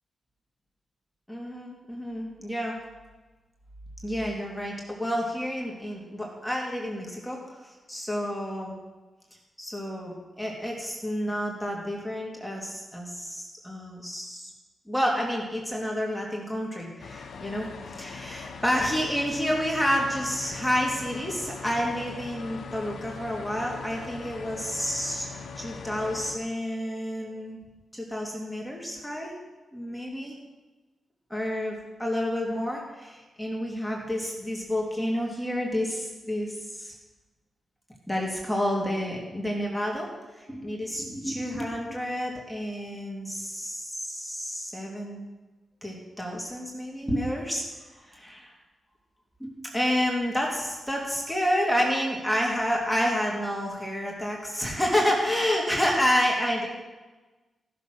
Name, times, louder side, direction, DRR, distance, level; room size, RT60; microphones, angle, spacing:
voice 1, 1.3-2.8 4.0-8.7 9.6-14.4 14.9-25.3 25.6-27.6 27.9-29.3 29.7-30.3 31.3-36.9 38.1-45.2 45.8-47.6 48.0-48.5 49.4-56.7, equal, 5° left, -2 dB, 2.5 m, -29 dB
sound 1, 17.0-26.4, left 5 dB, 75° left, 1.2 m, -41 dB
14.5 x 6.9 x 6.6 m, 1.2 s
cardioid pair, 75°, 0 cm